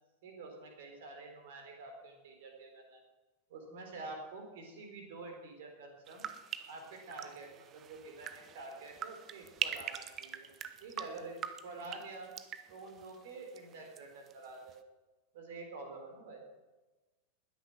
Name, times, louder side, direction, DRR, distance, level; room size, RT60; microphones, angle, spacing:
voice 1, 0.2-3.0 3.5-6.3 6.7-10.5 10.8-12.3 12.7-14.8 15.3-16.4, right 3 dB, 55° right, 3 dB, 3.8 m, -48 dB
sound 1, 6.1-14.0 14.3-14.8, right 9 dB, 30° right, 1.1 m, -43 dB
20.5 x 10.5 x 6.1 m, 1.1 s
figure-of-eight pair, 90°, 0 cm